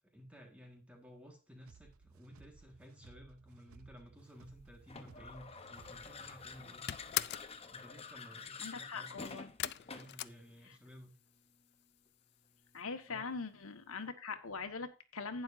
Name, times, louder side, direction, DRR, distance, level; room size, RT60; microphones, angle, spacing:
voice 1, 0.0-6.9 7.7-9.4 9.9-11.2 13.1-13.3, equal, 5° right, 2 dB, 1.6 m, -55 dB
sound 1, 1.6-6.7, right 4 dB, 80° right, 0.7 m, -60 dB
sound 2, 4.9-10.3, left 5 dB, 25° left, 0.8 m, -48 dB
sound 3, 5.9-6.2 6.5-7.6 9.6-11.1 11.4-12.0 12.3-12.4 12.7-12.8, left 13 dB, 50° left, 0.4 m, -39 dB
voice 2, 8.6-9.5 10.6-10.8 12.7-15.4, left 4 dB, 75° left, 7 dB, 1.4 m, -42 dB
11.5 x 9.5 x 2.6 m, 0.31 s
head